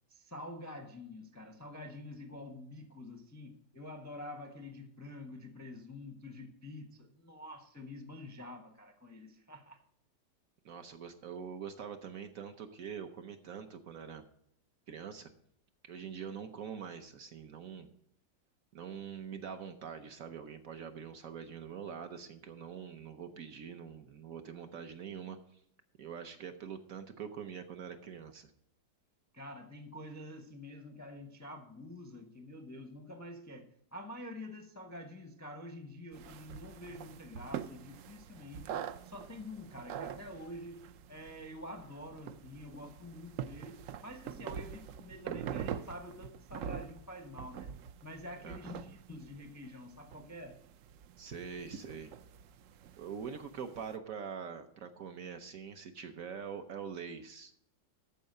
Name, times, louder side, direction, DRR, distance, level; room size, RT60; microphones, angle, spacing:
voice 1, 0.1-9.8 29.3-38.7 39.0-47.7 48.0-50.6, left 1 dB, 20° left, 6 dB, 0.4 m, -47 dB
voice 2, 10.6-14.3 14.9-15.3 15.8-17.9 18.7-25.6 26.0-28.5 48.4-48.8 51.2-52.1 53.0-57.5, right 7 dB, 60° right, 7 dB, 1.0 m, -44 dB
sound 1, 36.1-53.9, right 9 dB, 80° right, 0.7 m, -45 dB
13.5 x 4.8 x 6.5 m, 0.71 s
omnidirectional pair, 1.9 m